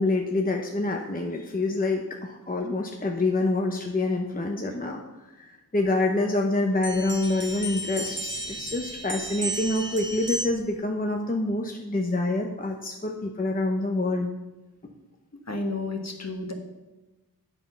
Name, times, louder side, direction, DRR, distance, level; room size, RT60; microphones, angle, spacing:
voice 1, 0.0-5.0 5.4-5.5 5.7-14.3, left 2 dB, 20° left, 1 dB, 0.9 m, -26 dB
sound 1, 6.8-10.7, right 1 dB, 30° right, 1.2 m, -34 dB
voice 2, 15.5-16.5, left 2 dB, 45° left, 3 dB, 1.5 m, -31 dB
9.1 x 6.0 x 5.6 m, 1.1 s
wide cardioid pair, 70°, 38 cm